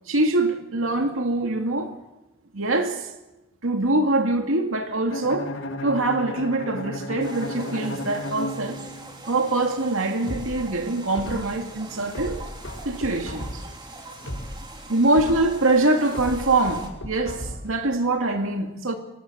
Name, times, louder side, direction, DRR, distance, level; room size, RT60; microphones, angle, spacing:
voice 1, 0.1-2.0 2.5-3.1 3.6-5.5 5.8-8.8 9.3-12.4 12.8-13.6 14.9-19.0, right 2 dB, 90° right, 2.4 m, -24 dB
Bowed string instrument, 5.1-9.2, left 1 dB, 65° left, 2.0 m, -33 dB
sound 1, 7.2-16.9, right 2 dB, 20° right, 3.5 m, -42 dB
sound 2, 10.3-11.7 12.1-13.8 14.1-15.7 16.1-17.8 18.1-18.2, equal, 90° left, 7.1 m, -36 dB
25.5 x 20.5 x 8.2 m
head